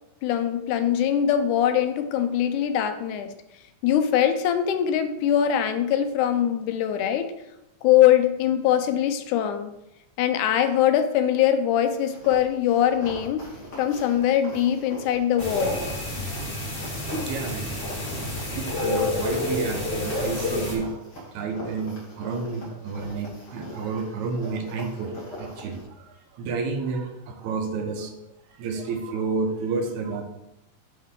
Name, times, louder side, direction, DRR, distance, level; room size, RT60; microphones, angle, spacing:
voice 1, 0.2-3.3 3.8-7.3 7.8-9.7 10.2-13.5 13.8-15.8, left 10 dB, 85° left, 9 dB, 2.1 m, -22 dB
sound 1, 11.9-25.8, equal, 40° left, 2.3 m, -41 dB
sound 2, 15.4-20.8, left 2 dB, 60° left, 0.5 m, -29 dB
voice 2, 17.2-17.8 18.5-28.1 28.5-30.2, right 4 dB, 75° right, 5 dB, 2.1 m, -30 dB
10.5 x 3.7 x 3.7 m, 0.87 s
omnidirectional pair, 3.5 m